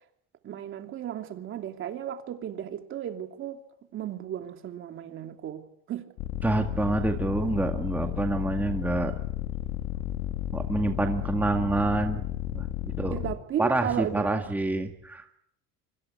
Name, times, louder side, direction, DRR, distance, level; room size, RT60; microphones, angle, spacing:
voice 1, 0.4-3.6 3.9-6.1 13.1-14.4, right 10 dB, 40° right, 2.8 m, -35 dB
sound 1, 6.2-13.4, left 13 dB, 70° left, 2.7 m, -33 dB
voice 2, 6.4-9.1 10.5-12.2 12.5-13.2 13.6-15.4, right 2 dB, 5° right, 1.9 m, -27 dB
25.0 x 25.0 x 8.4 m
cardioid pair, 150°, 30 cm